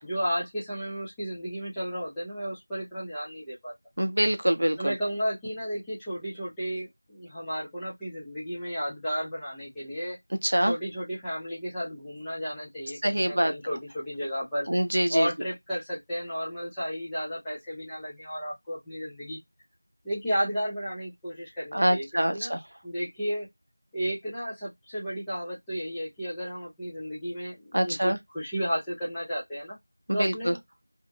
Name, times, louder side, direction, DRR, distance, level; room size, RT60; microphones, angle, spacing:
voice 1, 0.0-3.7 4.8-10.2 10.6-14.7 15.1-19.4 20.0-22.1 22.3-22.5 22.8-23.5 23.9-29.8 30.1-30.6, equal, 5° left, 0.4 m, -33 dB
voice 2, 4.0-4.9 10.4-10.7 13.0-13.5 14.7-15.3 21.7-22.6 27.7-28.2 30.1-30.5, right 1 dB, 50° right, 0.5 m, -25 dB
2.5 x 2.0 x 2.6 m
figure-of-eight pair, 175°, 0 cm